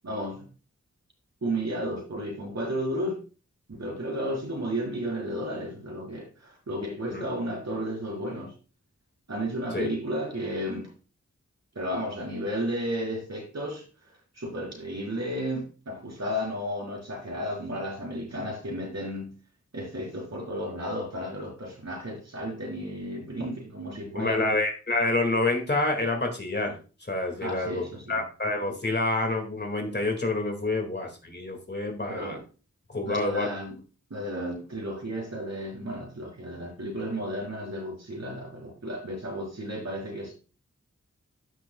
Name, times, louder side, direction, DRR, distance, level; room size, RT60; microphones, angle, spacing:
voice 1, 0.0-0.5 1.4-3.2 3.7-8.5 9.3-10.9 11.7-13.8 14.3-19.3 19.7-24.6 27.4-28.2 32.1-32.4 33.1-33.8 34.1-40.3, equal, 65° right, 4.0 m, -33 dB
voice 2, 24.2-26.8 27.1-32.4 32.9-33.5, left 2 dB, 35° left, 2.0 m, -28 dB
13.5 x 6.1 x 2.2 m
wide cardioid pair, 90°, 29 cm